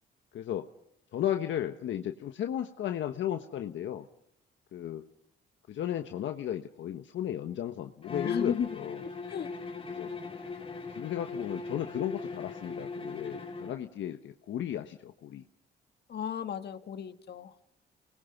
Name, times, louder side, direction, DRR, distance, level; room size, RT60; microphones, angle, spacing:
voice 1, 0.3-0.7 1.1-4.1 4.7-5.1 5.7-9.0 10.0-10.1 10.9-15.4, left 11 dB, 70° left, 6 dB, 1.2 m, -35 dB
Bowed string instrument, 8.0-13.8, left 4 dB, 30° left, 3.1 m, -39 dB
voice 2, 8.2-8.7 9.0-9.5 16.1-17.5, left 8 dB, 55° left, 9 dB, 1.7 m, -34 dB
29.5 x 20.5 x 6.0 m, 0.73 s
cardioid pair, 90°, 20 cm